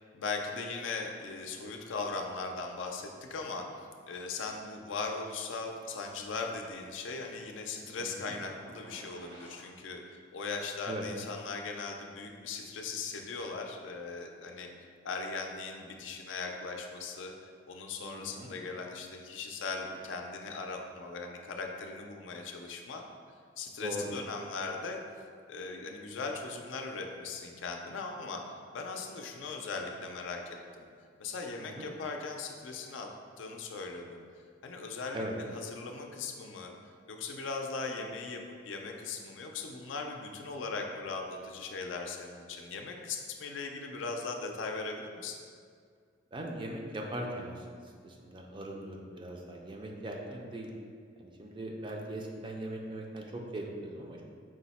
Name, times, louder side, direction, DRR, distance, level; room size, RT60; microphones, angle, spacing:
voice 1, 0.1-3.7 4.1-14.7 15.0-23.0 23.6-25.0 25.5-30.9 31.2-33.1 33.4-34.2 34.6-35.2 35.5-36.7 37.1-45.4, left 4 dB, 75° left, 3 dB, 0.4 m, -39 dB
voice 2, 8.0-8.3 10.9-11.1 18.0-18.5 23.8-24.1 31.6-31.9 35.1-35.4 46.3-50.7 51.2-54.2, right 1 dB, 25° right, 0 dB, 0.4 m, -40 dB
sound 1, 8.5-9.7, right 1 dB, 60° right, 0.7 m, -52 dB
4.8 x 2.1 x 4.1 m, 2.1 s
head